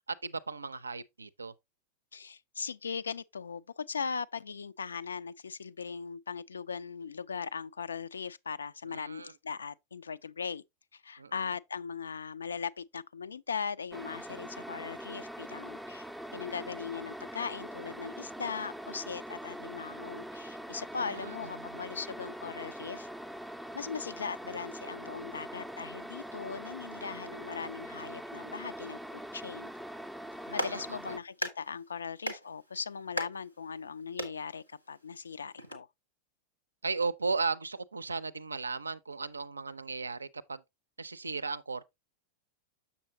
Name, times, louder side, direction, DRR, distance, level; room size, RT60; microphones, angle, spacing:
voice 1, 0.2-1.5 8.8-9.3 11.2-11.5 21.0-21.8 30.5-31.2 36.8-40.6 41.0-41.8, right 4 dB, 75° right, 0.4 m, -36 dB
voice 2, 2.1-10.6 10.9-16.1 16.3-23.1 23.7-29.7 30.5-35.9, left 6 dB, 70° left, 0.3 m, -39 dB
sound 1, 13.9-31.2, equal, ahead, 0.4 m, -43 dB
Clapping, 30.3-35.7, equal, 90° left, 1.4 m, -41 dB
7.2 x 6.7 x 2.8 m
figure-of-eight pair, 90°, 0 cm